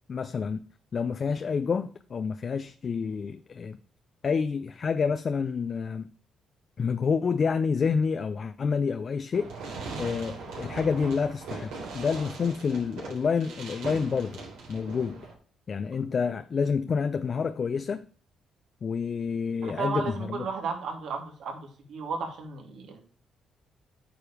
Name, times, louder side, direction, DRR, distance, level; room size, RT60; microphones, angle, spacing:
voice 1, 0.1-0.6 0.9-3.8 4.2-6.1 6.8-9.5 10.0-14.4 14.7-15.3 15.7-18.1 18.8-20.4, left 5 dB, 45° left, 0.5 m, -28 dB
Fireworks, 9.3-15.3, right 4 dB, 85° right, 3.7 m, -40 dB
voice 2, 19.6-21.6 21.9-23.0, right 4 dB, 70° right, 2.8 m, -33 dB
9.0 x 5.1 x 4.9 m
cardioid pair, 90°, 0 cm